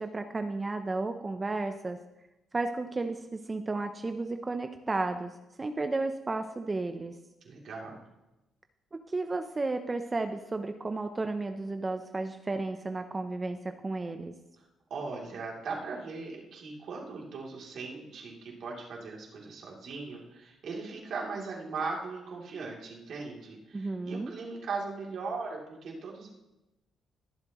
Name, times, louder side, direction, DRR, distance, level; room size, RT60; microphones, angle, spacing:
voice 1, 0.0-2.0 2.5-7.2 8.9-14.3 23.7-24.3, right 3 dB, 25° right, 7 dB, 0.7 m, -33 dB
voice 2, 7.4-8.0 14.9-26.3, right 4 dB, 65° right, -2 dB, 3.1 m, -39 dB
21.5 x 7.4 x 3.1 m, 0.98 s
cardioid pair, 90°, 0 cm